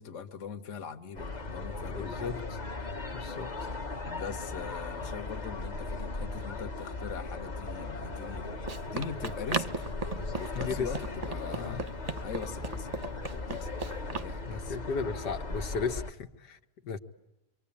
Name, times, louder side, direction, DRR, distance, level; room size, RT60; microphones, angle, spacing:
voice 1, 0.0-2.4 4.0-8.5 8.9-9.8 10.4-11.9 12.2-13.8 14.0-14.8, left 7 dB, 50° left, 6 dB, 1.5 m, -41 dB
sound 1, 1.1-16.1, left 3 dB, 30° left, 1.2 m, -38 dB
voice 2, 1.9-2.4 3.1-3.7 10.6-10.9 11.5-11.8 14.5-17.0, left 5 dB, 80° left, 5 dB, 2.0 m, -35 dB
Run, 8.1-14.3, right 4 dB, 30° right, 0.8 m, -38 dB
25.5 x 24.5 x 8.6 m, 0.93 s
omnidirectional pair, 1.8 m